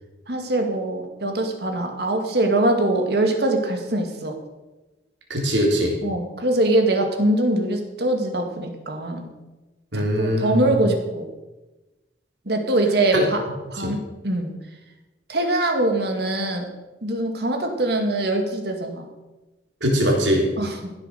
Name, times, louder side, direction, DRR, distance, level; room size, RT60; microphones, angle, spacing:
voice 1, 0.3-4.3 6.0-9.3 9.9-11.3 12.5-13.4 13.7-14.5 15.3-16.7 17.0-19.0 20.6-20.9, right 1 dB, 60° right, 4 dB, 2.2 m, -23 dB
voice 2, 5.3-5.9 9.9-10.7 13.1-13.2 13.8-13.9 19.8-20.5, equal, 75° right, -1 dB, 3.8 m, -21 dB
15.0 x 8.1 x 6.6 m, 1.1 s
head